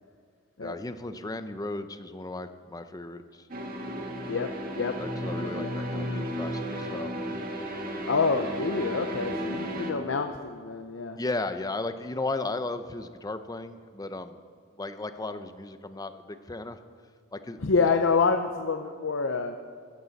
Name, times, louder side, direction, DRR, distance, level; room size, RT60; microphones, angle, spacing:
voice 1, 0.6-3.5 4.9-7.1 11.2-14.4 14.8-16.8 17.3-17.6, left 2 dB, 20° left, 10 dB, 0.6 m, -35 dB
sound 1, 3.5-9.9, equal, 45° right, 1.7 m, -34 dB
voice 2, 5.3-5.7 8.1-11.2 17.6-19.5, left 4 dB, 65° left, 6 dB, 0.6 m, -27 dB
15.0 x 14.5 x 4.1 m, 2.1 s
head